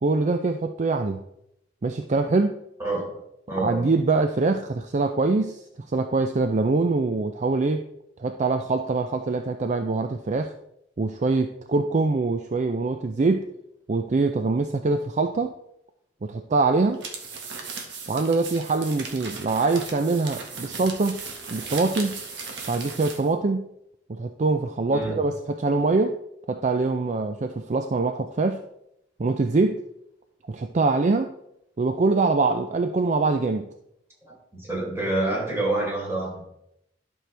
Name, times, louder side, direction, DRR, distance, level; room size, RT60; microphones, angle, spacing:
voice 1, 0.0-1.2 1.8-2.6 3.5-7.8 8.2-10.5 11.0-13.5 13.9-15.5 16.2-17.0 18.1-21.2 21.5-22.2 22.7-23.7 24.1-26.2 26.5-28.6 29.2-29.8 30.5-31.4 31.8-33.7, right 3 dB, 40° right, 7 dB, 0.4 m, -24 dB
voice 2, 3.5-3.8 24.9-25.2 34.5-36.4, right 2 dB, 15° right, -5 dB, 3.7 m, -27 dB
sound 1, 16.9-23.3, right 4 dB, 75° right, 1.5 m, -37 dB
12.0 x 6.3 x 3.3 m, 0.80 s
head